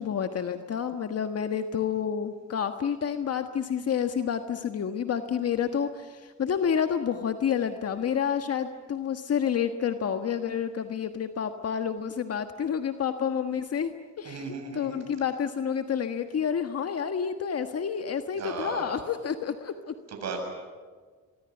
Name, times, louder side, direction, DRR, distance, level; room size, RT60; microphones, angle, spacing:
voice 1, 0.0-19.9, left 7 dB, 55° left, 8 dB, 1.5 m, -29 dB
voice 2, 14.2-15.0 18.4-19.0 20.1-20.4, right 4 dB, 60° right, 2 dB, 7.6 m, -35 dB
24.0 x 22.5 x 9.9 m, 1.5 s
cardioid pair, 90°, 30 cm